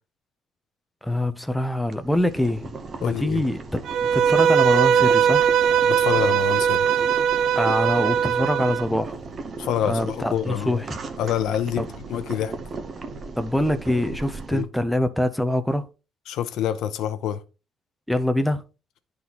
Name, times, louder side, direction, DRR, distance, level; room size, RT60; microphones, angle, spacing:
voice 1, 1.0-2.7 3.0-3.6 4.1-5.4 7.6-9.2 9.8-10.9 11.8-11.9 13.4-15.8 18.1-18.6, left 1 dB, ahead, 0.5 m, -24 dB
Boiling, 1.9-14.6, right 3 dB, 30° right, 0.8 m, -36 dB
voice 2, 3.0-3.4 5.8-6.9 9.6-10.8 11.2-11.8 12.1-12.5 14.5-14.7 16.3-17.4, left 10 dB, 65° left, 0.7 m, -26 dB
Bowed string instrument, 3.9-8.8, right 8 dB, 65° right, 0.5 m, -20 dB
11.0 x 3.9 x 2.9 m
cardioid pair, 170°, 0 cm